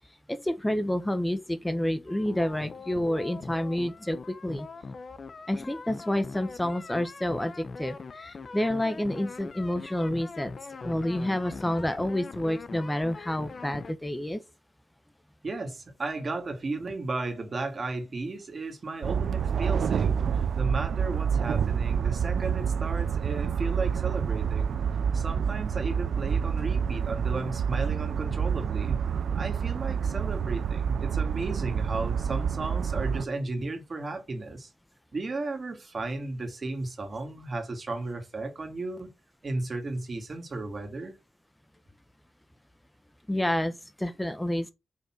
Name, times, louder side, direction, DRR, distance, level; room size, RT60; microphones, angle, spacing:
voice 1, 0.3-4.7 5.5-10.5 10.8-14.4 43.3-44.7, left 1 dB, 10° left, 1.0 m, -29 dB
sound 1, 2.1-13.9, left 4 dB, 55° left, 0.8 m, -42 dB
voice 2, 15.4-24.8 25.1-29.0 29.3-34.7 35.1-39.1 39.4-41.2, right 3 dB, 45° right, 2.5 m, -34 dB
sound 2, 19.0-33.3, right 7 dB, 80° right, 0.4 m, -28 dB
5.7 x 4.1 x 6.0 m
cardioid pair, 60°, 0 cm